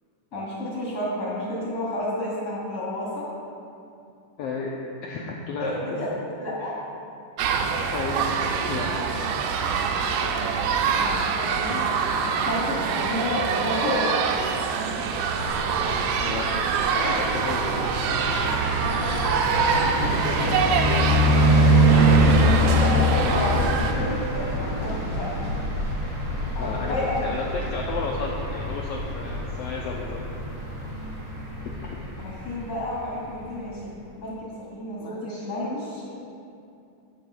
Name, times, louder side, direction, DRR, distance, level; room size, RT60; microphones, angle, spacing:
voice 1, 0.3-3.3 5.6-6.1 6.4-6.8 9.0-9.3 9.9-10.6 10.9-11.9 12.4-14.1 18.8-19.3 19.9-20.5 22.8-25.5 26.5-27.2 28.0-28.1 32.2-36.2, left 1 dB, 30° left, -6 dB, 2.6 m, -31 dB
voice 2, 4.4-4.8 5.0-6.1 7.9-8.3 8.7-8.9 16.2-16.5 16.9-17.7 21.2-22.4 26.6-30.2 31.6-32.0 35.0-35.5, left 4 dB, 80° left, -2 dB, 1.4 m, -33 dB
sound 1, 7.4-23.9, right 6 dB, 80° right, 2.1 m, -25 dB
road and cars, 15.3-33.3, equal, 40° right, 1.7 m, -24 dB
12.5 x 9.6 x 2.3 m, 2.5 s
omnidirectional pair, 3.6 m